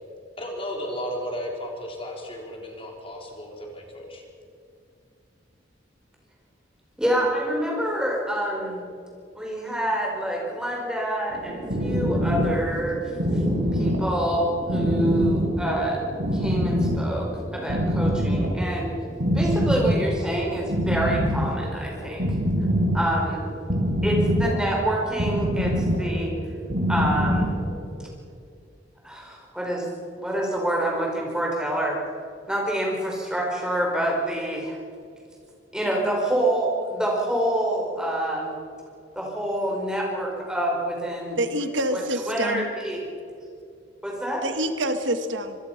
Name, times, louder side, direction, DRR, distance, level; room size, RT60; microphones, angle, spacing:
voice 1, 0.4-4.2, equal, 30° left, 1 dB, 4.0 m, -34 dB
voice 2, 7.0-8.8 9.3-13.0 13.7-16.0 16.3-18.9 19.3-22.2 22.9-23.4 24.0-26.3 26.9-27.5 29.0-29.9 30.2-32.0 32.5-34.8 35.7-38.6 39.1-41.4 41.9-43.0 44.0-44.4, right 1 dB, 5° right, -1 dB, 4.8 m, -27 dB
sound 1, 11.3-28.0, equal, 70° right, 4.7 m, -25 dB
voice 3, 41.4-42.7 44.4-45.6, right 1 dB, 85° right, 8 dB, 1.6 m, -26 dB
26.0 x 21.0 x 5.8 m, 2.4 s
head